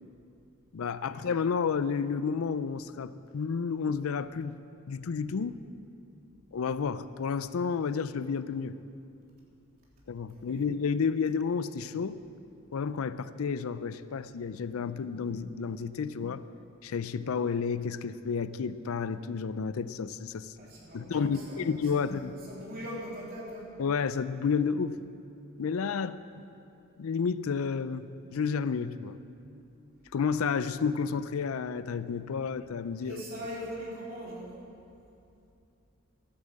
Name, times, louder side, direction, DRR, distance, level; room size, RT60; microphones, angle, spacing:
voice 1, 0.7-4.6 4.9-5.6 6.5-8.7 10.1-12.2 12.7-16.5 16.8-20.5 20.9-22.3 23.8-25.0 25.6-26.2 27.0-29.2 30.1-33.2, left 5 dB, 75° left, 14 dB, 0.4 m, -31 dB
voice 2, 10.3-10.7 20.6-23.6 33.0-34.5, equal, 45° right, -5 dB, 3.4 m, -41 dB
13.5 x 8.6 x 7.5 m, 2.6 s
head